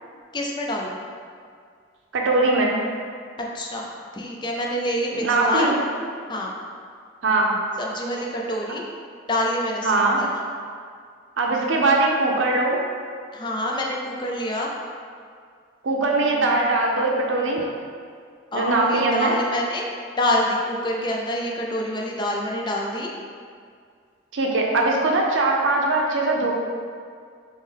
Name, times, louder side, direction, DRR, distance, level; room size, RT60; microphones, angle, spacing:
voice 1, 0.3-1.0 3.4-3.9 4.1-5.8 6.3-6.5 7.8-8.8 9.3-10.3 13.3-14.7 18.5-19.9 20.2-23.1, left 1 dB, 25° left, -1 dB, 0.4 m, -26 dB
voice 2, 2.1-2.8 5.1-5.7 7.2-7.5 9.8-10.2 11.4-12.8 15.8-17.6 18.5-19.4 24.3-26.5, right 2 dB, 90° right, -1 dB, 0.6 m, -21 dB
3.5 x 3.1 x 3.6 m, 2.1 s
head